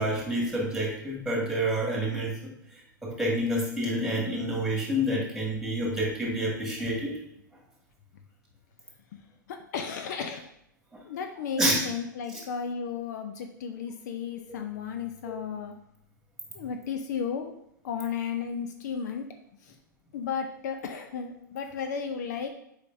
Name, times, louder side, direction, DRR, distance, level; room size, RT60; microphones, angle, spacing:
voice 1, 0.0-2.3 3.0-7.2 11.6-11.8 12.3-12.4 15.2-15.3, equal, 5° right, -2 dB, 2.2 m, -28 dB
voice 2, 9.5-10.5 11.0-15.7 16.5-17.5 17.8-19.3 19.6-19.8 20.1-22.5, left 6 dB, 60° left, 6 dB, 0.6 m, -34 dB
8.1 x 5.0 x 2.7 m, 0.76 s
figure-of-eight pair, 100°, 11 cm